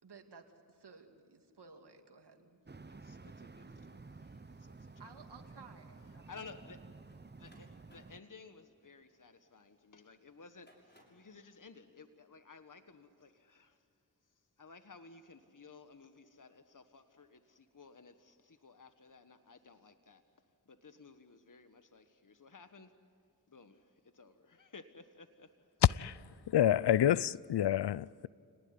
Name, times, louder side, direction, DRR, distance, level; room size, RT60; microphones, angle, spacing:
voice 1, 0.0-2.6 5.0-6.2, right 4 dB, 80° right, 2.6 m, -56 dB
sound 1, 2.7-8.2, right 3 dB, 25° right, 0.9 m, -53 dB
voice 2, 2.9-5.0 6.1-7.0 7.3-13.9 14.3-22.9 23.5-25.7, left 4 dB, 50° left, 1.6 m, -56 dB
sound 2, 7.1-9.8 10.4-11.3, equal, 25° left, 6.9 m, -65 dB
voice 3, 26.5-28.3, left 11 dB, 80° left, 0.5 m, -28 dB
29.0 x 19.0 x 9.8 m
cardioid pair, 40°, 40 cm